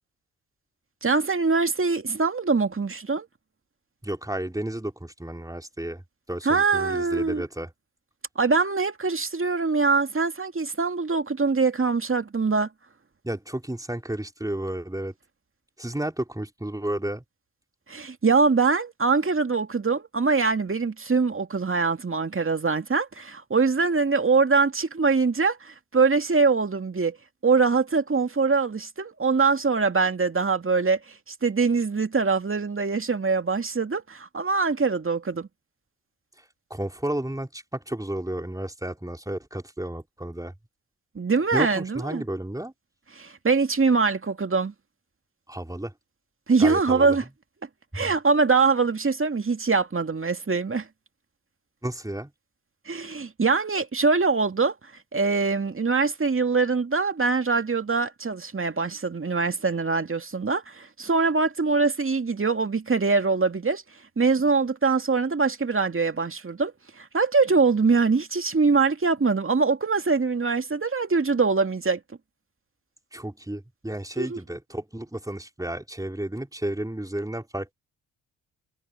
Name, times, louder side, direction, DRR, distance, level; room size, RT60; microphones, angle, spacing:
voice 1, 1.0-3.3 6.5-7.4 8.4-12.7 17.9-27.2 27.4-31.0 31.3-35.5 41.1-42.2 43.2-44.7 46.5-47.2 47.9-50.9 52.9-54.7 55.1-63.8 64.2-66.7 67.0-72.0 74.2-74.4, right 4 dB, 30° right, 2.4 m, -23 dB
voice 2, 4.0-6.0 6.3-7.7 13.2-15.1 15.8-17.2 36.4-40.5 41.5-42.7 45.5-45.9 46.6-47.2 47.9-48.0 51.8-52.3 73.1-77.7, right 1 dB, 10° right, 3.8 m, -32 dB
hypercardioid pair, 45°, 41 cm